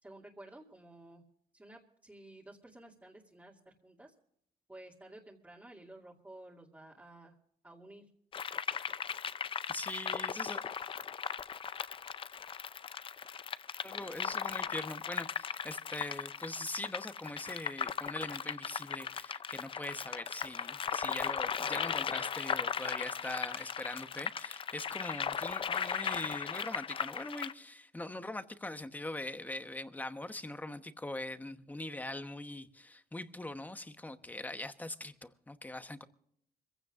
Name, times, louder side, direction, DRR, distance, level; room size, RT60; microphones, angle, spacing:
voice 1, 0.0-1.2 1.5-4.1 4.7-7.3 7.6-8.0, right 1 dB, 10° right, 2.4 m, -53 dB
sound 1, 8.3-27.5, left 7 dB, 35° left, 0.5 m, -37 dB
voice 2, 9.7-10.6 13.8-36.0, left 2 dB, 10° left, 1.0 m, -42 dB
25.5 x 16.0 x 2.5 m
cardioid pair, 120°, 16 cm